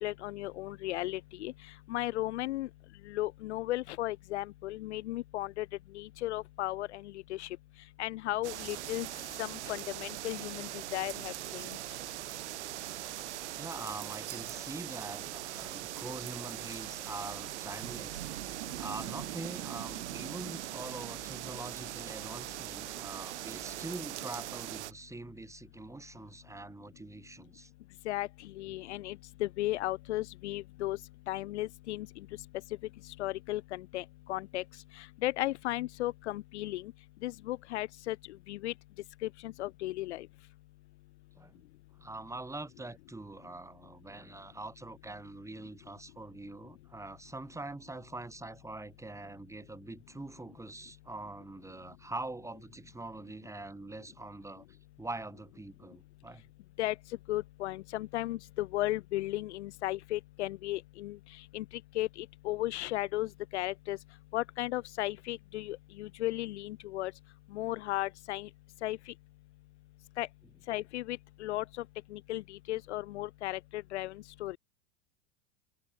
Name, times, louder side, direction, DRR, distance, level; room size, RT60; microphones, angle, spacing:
voice 1, 0.0-1.5 1.9-2.7 3.1-5.7 5.9-7.5 8.0-9.1 9.4-11.7 28.1-31.0 31.3-32.1 33.2-34.6 35.0-36.9 37.2-38.2 38.5-38.7 39.2-40.3 56.8-57.0 57.3-61.2 61.5-61.6 61.9-64.0 64.3-67.1 67.5-68.5 68.8-69.1 70.2-70.3 70.7-71.6 72.1-74.6, left 16 dB, 75° left, 0.5 m, -35 dB
Brass instrument, 8.3-15.8, right 10 dB, 35° right, 5.2 m, -63 dB
sound 1, 8.4-24.9, right 15 dB, 75° right, 0.6 m, -41 dB
voice 2, 13.6-27.7 41.3-41.6 42.0-56.4, right 2 dB, 10° right, 3.7 m, -44 dB
hypercardioid pair, 85°, 35 cm